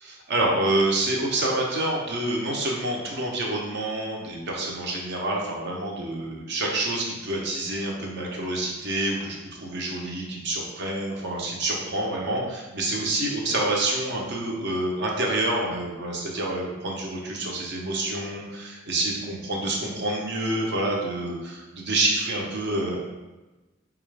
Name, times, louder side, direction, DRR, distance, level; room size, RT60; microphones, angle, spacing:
voice 1, 0.0-23.0, right 2 dB, 60° right, -1 dB, 0.8 m, -27 dB
4.3 x 2.4 x 3.3 m, 1.1 s
head